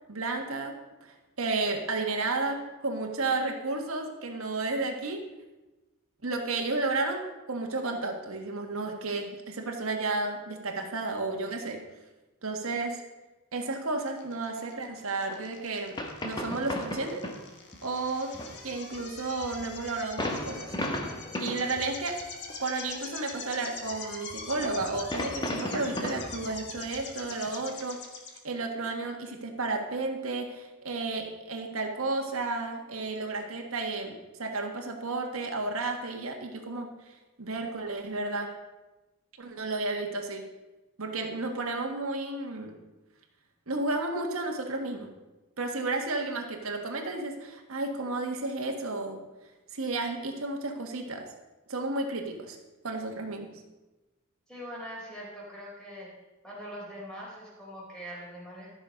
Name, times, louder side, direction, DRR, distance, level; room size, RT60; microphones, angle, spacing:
voice 1, 0.1-5.3 6.2-11.9 12.4-13.0 13.5-16.0 16.2-17.2 17.8-18.4 18.6-20.7 21.4-22.2 22.6-28.0 28.4-36.9 37.4-38.5 39.4-40.5 41.0-42.8 43.7-45.1 45.6-49.2 49.7-51.3 51.7-52.6 52.8-53.5, right 3 dB, 70° right, 3 dB, 1.6 m, -32 dB
sound 1, 14.1-28.4, left 4 dB, 50° left, 1.5 m, -44 dB
sound 2, 15.3-15.4 15.7-15.8 16.0-17.4 17.7-17.9 18.3-21.9 22.2-22.6 23.3-24.0 24.3-27.5, left 1 dB, 20° left, 1.1 m, -36 dB
voice 2, 54.5-56.1 56.4-58.8, equal, 5° left, -5 dB, 3.7 m, -42 dB
13.5 x 6.7 x 5.1 m, 1.1 s
head